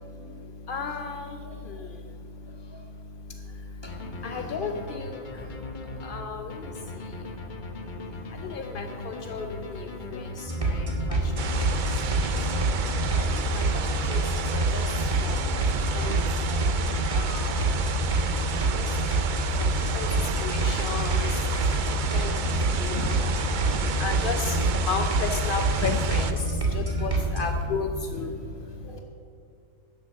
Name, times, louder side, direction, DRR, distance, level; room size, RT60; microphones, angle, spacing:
voice 1, 0.7-1.3 1.7-1.8 4.2-5.2 6.0-6.5 8.4-10.3 10.6-11.2 13.3-13.7 14.1-14.2 14.5-14.8 15.2-15.4 15.9-16.2 17.1-17.6 18.7-18.8 19.9-20.1 20.4-21.3 22.1-22.3 22.8-23.2 24.0-24.6 24.8-26.4 26.7-28.3, left 5 dB, 60° left, 5 dB, 0.5 m, -33 dB
sound 1, 3.9-13.2, left 2 dB, 40° left, 0.9 m, -39 dB
sound 2, 10.5-27.6, right 1 dB, 20° right, 1.7 m, -26 dB
sound 3, 11.4-26.3, right 6 dB, 80° right, 0.4 m, -33 dB
voice 2, 15.3-16.2 16.5-16.7 17.0-17.1 18.6-18.8 19.8-19.9 21.2-21.8 22.4-23.1 23.7-23.8 26.7-26.8 28.8-28.9, left 1 dB, 15° left, 0 dB, 1.6 m, -42 dB
11.5 x 7.5 x 6.5 m, 2.5 s
omnidirectional pair, 1.6 m